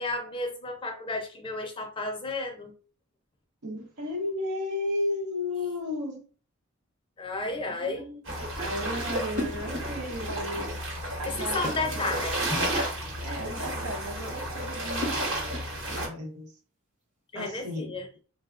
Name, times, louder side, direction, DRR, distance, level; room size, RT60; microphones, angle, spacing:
voice 1, 0.0-2.7 7.2-8.0 11.4-12.3 17.3-18.1, left 2 dB, 25° left, 0.4 m, -32 dB
voice 2, 3.6-6.2 7.6-8.2 8.6-10.8 11.2-12.3 13.2-15.6 15.8-16.5 17.3-18.0, left 1 dB, 85° right, 0.8 m, -34 dB
sound 1, 8.2-16.1, right 1 dB, 60° right, 1.0 m, -32 dB
sound 2, 9.4-10.0 11.6-12.4 14.7-15.8, left 1 dB, 35° right, 0.7 m, -36 dB
3.3 x 2.1 x 2.4 m
head